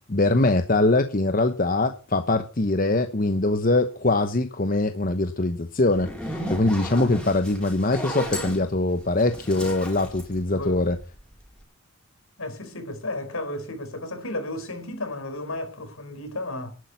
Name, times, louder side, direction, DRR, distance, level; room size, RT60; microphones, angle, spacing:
voice 1, 0.1-6.1 6.5-11.0, left 2 dB, 40° left, 1.0 m, -22 dB
Zipper (clothing), 5.9-11.2, equal, 5° left, 4.2 m, -34 dB
voice 2, 12.4-16.7, left 2 dB, 75° left, 4.6 m, -33 dB
11.5 x 10.0 x 9.4 m
head